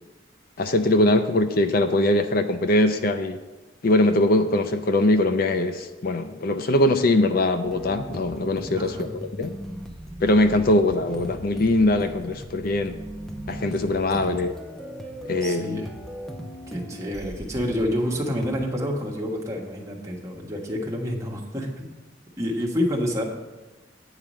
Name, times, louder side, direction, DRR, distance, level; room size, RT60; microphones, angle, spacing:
voice 1, 0.6-3.4 3.8-9.5 10.2-13.0 13.5-14.5 15.3-15.8, left 1 dB, 50° left, 8 dB, 0.5 m, -22 dB
sound 1, 7.6-18.5, equal, ahead, 0.7 m, -38 dB
voice 2, 8.8-9.1 14.2-14.4 15.4-15.9 16.7-21.9 22.4-23.2, equal, 15° right, -1 dB, 1.4 m, -28 dB
9.2 x 4.9 x 7.4 m, 1.1 s
head